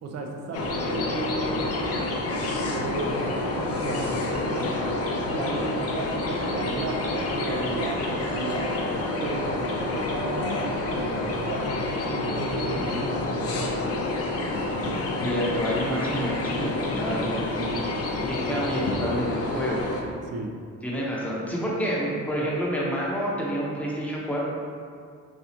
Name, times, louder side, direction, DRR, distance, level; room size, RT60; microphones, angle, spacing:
voice 1, 0.0-1.9 2.7-4.8 5.2-8.7 9.2-13.8 17.6-17.8 18.5-18.6 20.3-20.5, right 3 dB, 55° right, 2 dB, 0.5 m, -34 dB
sound 1, 0.5-20.0, left 2 dB, 50° left, 0.5 m, -28 dB
voice 2, 15.2-17.8 18.3-19.8 20.8-24.5, equal, 5° left, -6 dB, 0.8 m, -28 dB
4.2 x 2.3 x 2.8 m, 2.1 s
cardioid pair, 90°, 30 cm